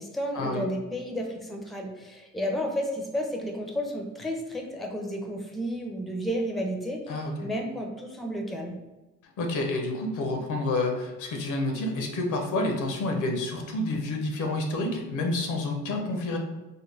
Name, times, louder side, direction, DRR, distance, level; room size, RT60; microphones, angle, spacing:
voice 1, 0.0-8.8, equal, ahead, 1 dB, 0.5 m, -32 dB
voice 2, 7.1-7.5 9.4-16.4, left 2 dB, 80° left, 2 dB, 0.8 m, -29 dB
3.6 x 2.1 x 3.2 m, 1.1 s
cardioid pair, 90°, 30 cm